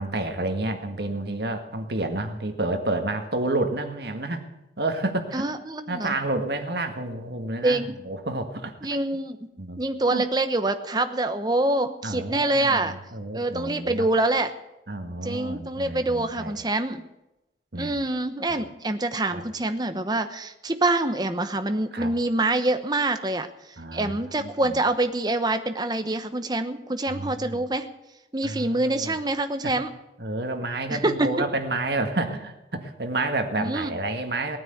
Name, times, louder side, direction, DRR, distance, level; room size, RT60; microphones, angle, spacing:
voice 1, 0.0-4.5 4.8-5.5 5.9-8.7 9.6-9.8 10.1-10.2 12.0-14.1 14.9-16.6 17.7-18.0 18.5-18.6 19.3-19.4 21.9-22.1 23.8-24.8 27.1-27.6 28.4-29.2 29.6-29.7 30.2-34.6, right 2 dB, 65° right, 6 dB, 1.8 m, -30 dB
voice 2, 5.3-6.1 7.6-7.9 8.8-9.5 9.8-12.9 13.3-14.5 15.2-17.1 17.8-27.9 28.3-29.9 30.9-31.3 33.6-33.9, right 2 dB, 25° right, 9 dB, 1.0 m, -25 dB
18.0 x 9.6 x 7.9 m, 0.93 s
head